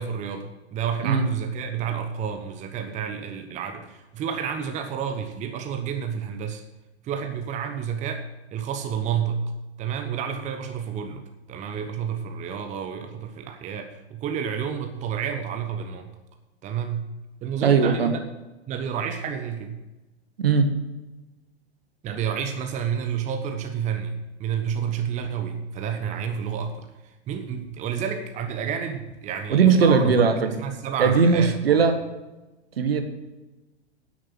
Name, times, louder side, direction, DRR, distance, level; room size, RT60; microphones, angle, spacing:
voice 1, 0.0-6.6 7.0-8.2 8.5-9.4 9.8-16.1 16.6-17.1 17.4-18.2 18.7-19.8 22.0-30.3 30.6-31.8, right 7 dB, 20° right, 6 dB, 1.0 m, -30 dB
voice 2, 17.6-18.1 20.4-20.7 29.5-30.5 31.0-32.0 32.8-33.0, right 5 dB, 65° right, 7 dB, 1.6 m, -19 dB
10.0 x 9.4 x 6.1 m, 1.1 s
figure-of-eight pair, 105°, 32 cm